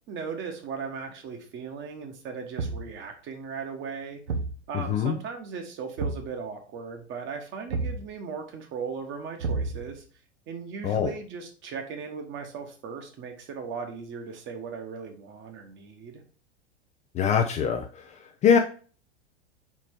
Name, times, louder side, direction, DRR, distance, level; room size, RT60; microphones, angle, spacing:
voice 1, 0.1-4.2 4.7-10.0 10.5-16.2, right 5 dB, 35° right, 4 dB, 1.5 m, -37 dB
Thump thud, 2.6-3.0 4.3-4.6 6.0-6.3 7.7-8.1 9.4-10.0, right 3 dB, 70° right, 1.1 m, -30 dB
voice 2, 4.7-5.1 10.8-11.1 17.1-18.6, left 7 dB, 20° left, 4 dB, 0.5 m, -23 dB
4.8 x 4.5 x 4.5 m, 0.39 s
figure-of-eight pair, 90°, 34 cm